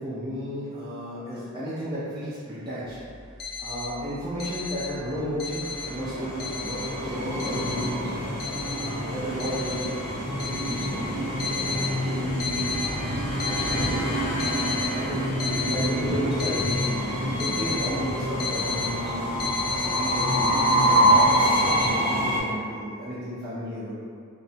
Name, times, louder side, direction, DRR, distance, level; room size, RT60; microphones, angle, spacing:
voice 1, 0.0-3.0 3.6-8.1 8.7-10.9 11.6-12.5 12.8-15.2 15.6-19.3 19.7-24.0, equal, 20° right, -12 dB, 0.4 m, -34 dB
sound 1, 3.2-3.9 4.3-4.9 5.2-5.9 6.4-6.9 7.4-7.9 8.4-8.9 9.4-9.9 10.4-10.9 11.4-11.9 12.4-12.9 13.3-13.9 14.4-14.9 15.4-15.9 16.4-16.9 17.4-17.9 18.4-18.9 19.4-21.9, left 5 dB, 45° left, 0.5 m, -31 dB
Train, 5.6-22.4, right 1 dB, 85° left, 0.8 m, -26 dB
2.7 x 2.1 x 2.7 m, 2.3 s
head